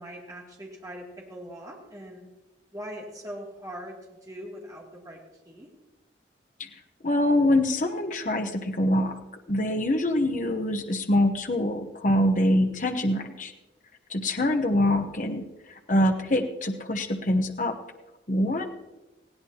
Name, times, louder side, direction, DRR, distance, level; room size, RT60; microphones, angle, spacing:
voice 1, 0.0-2.2 2.7-5.2 5.4-5.7, equal, 20° right, -3 dB, 2.6 m, -41 dB
voice 2, 7.0-9.2 9.5-13.5 14.1-15.5 15.9-17.8 18.3-18.7, left 1 dB, 45° left, 5 dB, 1.0 m, -24 dB
19.5 x 16.0 x 2.9 m, 1.1 s
head